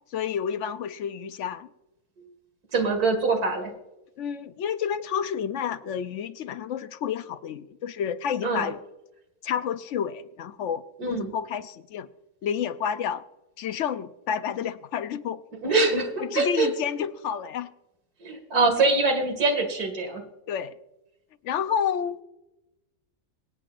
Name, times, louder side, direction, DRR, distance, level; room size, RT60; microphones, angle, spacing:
voice 1, 0.1-1.7 4.2-8.8 9.4-12.1 12.4-13.2 13.6-15.4 16.2-17.7 20.5-20.7 21.4-22.2, left 8 dB, 65° left, 12 dB, 0.8 m, -30 dB
voice 2, 2.7-3.7 8.4-8.7 11.0-11.3 15.6-16.7 18.2-20.2, right 3 dB, 80° right, 5 dB, 2.4 m, -24 dB
24.0 x 8.5 x 2.5 m, 0.94 s
omnidirectional pair, 1.6 m